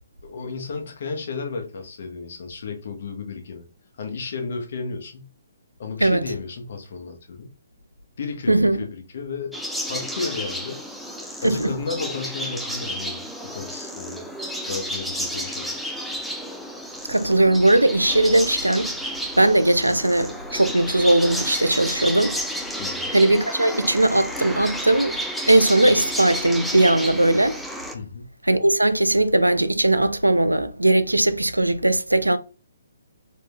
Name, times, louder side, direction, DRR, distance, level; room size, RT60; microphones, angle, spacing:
voice 1, 0.2-3.6 4.0-5.3 5.8-7.5 8.2-9.6 9.9-14.2 14.6-15.9 22.8-23.1 27.9-28.2, left 4 dB, 55° left, 0.9 m, -33 dB
voice 2, 8.5-8.8 11.4-11.7 17.1-18.9 19.4-22.4 23.1-25.2 25.5-27.6 28.5-32.4, right 1 dB, 90° right, 0.3 m, -19 dB
sound 1, 9.5-27.9, equal, ahead, 0.4 m, -31 dB
3.6 x 2.5 x 2.3 m
figure-of-eight pair, 130°, 0 cm